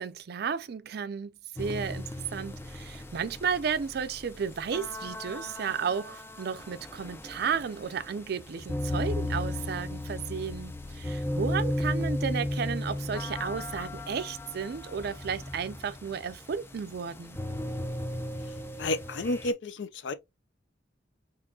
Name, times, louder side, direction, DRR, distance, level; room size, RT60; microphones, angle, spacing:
voice 1, 0.0-17.4, right 6 dB, 55° right, 0.4 m, -33 dB
sound 1, 1.6-19.5, left 1 dB, 15° left, 0.3 m, -36 dB
voice 2, 18.8-20.1, left 2 dB, 70° left, 0.5 m, -31 dB
3.6 x 3.0 x 2.3 m
head